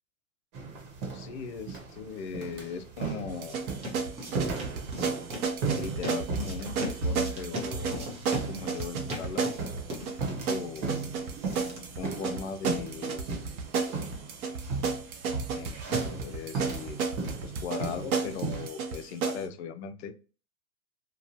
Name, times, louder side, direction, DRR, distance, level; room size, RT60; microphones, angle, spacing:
sound 1, 0.5-18.7, right 4 dB, 40° right, 1.1 m, -37 dB
voice 1, 1.1-3.6 5.7-8.1 8.5-9.5 10.3-10.9 12.0-13.5 15.5-17.0 17.4-20.1, left 6 dB, 50° left, 9 dB, 0.5 m, -39 dB
sound 2, 2.7-12.7, equal, 15° right, 0.6 m, -41 dB
sound 3, 3.3-19.4, right 5 dB, 80° right, 0.8 m, -33 dB
2.9 x 2.2 x 2.7 m, 0.36 s
hypercardioid pair, 130°, 43 cm